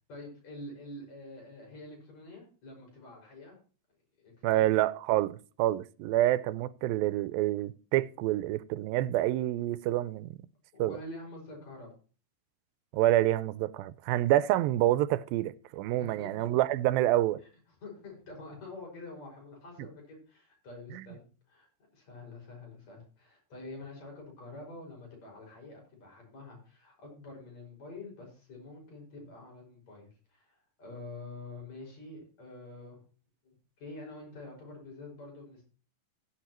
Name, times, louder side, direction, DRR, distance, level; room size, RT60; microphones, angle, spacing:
voice 1, 0.1-3.6 4.2-4.7 10.7-11.9 16.0-16.7 17.8-21.7 21.9-33.0 33.4-35.6, left 2 dB, 50° left, 6.8 m, -47 dB
voice 2, 4.4-10.4 10.8-11.0 12.9-17.4 20.9-21.0, right 15 dB, 90° right, 2.4 m, -27 dB
16.5 x 8.4 x 3.0 m
omnidirectional pair, 4.0 m